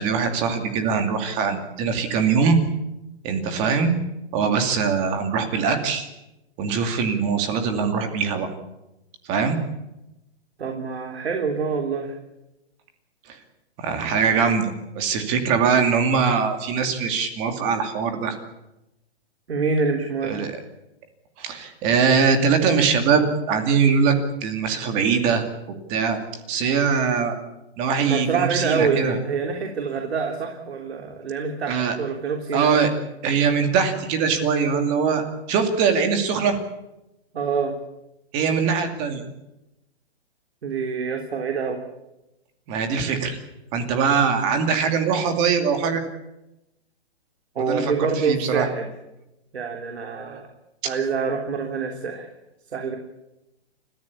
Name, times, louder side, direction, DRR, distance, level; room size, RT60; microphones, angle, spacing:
voice 1, 0.0-2.6 3.2-4.0 4.3-6.0 6.6-8.5 9.3-9.6 13.3-13.4 13.8-14.7 15.0-18.4 20.2-20.5 21.4-24.1 24.4-25.4 25.9-26.2 26.5-27.4 27.8-29.2 31.7-32.0 32.5-32.9 33.2-36.6 38.3-39.2 42.7-43.4 43.7-46.0 47.6-48.7 50.8-50.9, right 6 dB, 20° right, 6 dB, 2.5 m, -22 dB
voice 2, 10.6-12.2 19.5-20.3 28.1-32.7 37.3-37.7 40.6-41.8 47.6-48.9 49.5-50.5 50.8-52.3 52.7-53.0, right 5 dB, 70° right, 3 dB, 3.7 m, -26 dB
30.0 x 15.0 x 8.6 m, 0.93 s
hypercardioid pair, 170°, 33 cm